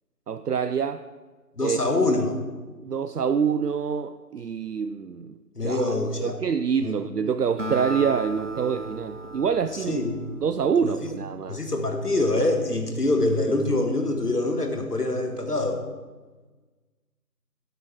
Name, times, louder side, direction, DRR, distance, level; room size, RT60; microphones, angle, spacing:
voice 1, 0.3-1.0 1.6-1.8 2.8-5.3 5.6-10.0 10.4-11.6, right 6 dB, 75° right, 10 dB, 0.5 m, -26 dB
voice 2, 1.6-2.4 5.6-6.4 6.8-7.0 9.9-10.2 10.8-11.1 11.5-15.8, left 2 dB, 70° left, 4 dB, 1.7 m, -25 dB
Acoustic guitar, 7.6-11.2, right 2 dB, 50° right, 0.9 m, -35 dB
10.5 x 8.0 x 4.7 m, 1.3 s
figure-of-eight pair, 170°, 48 cm